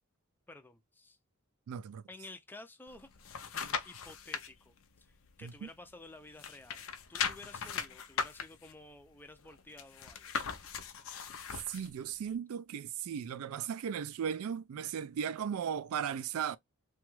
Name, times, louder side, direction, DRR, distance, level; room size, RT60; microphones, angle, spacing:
voice 1, 0.5-1.2 2.1-3.1 3.5-6.8 7.1-10.3, left 2 dB, 10° left, 0.4 m, -52 dB
voice 2, 1.7-2.0 5.4-5.7 11.7-16.6, right 8 dB, 65° right, 0.3 m, -36 dB
sound 1, 2.9-4.5 5.0-6.1 6.3-11.9 12.3-12.4, left 6 dB, 60° left, 0.5 m, -39 dB
2.9 x 2.3 x 3.0 m
head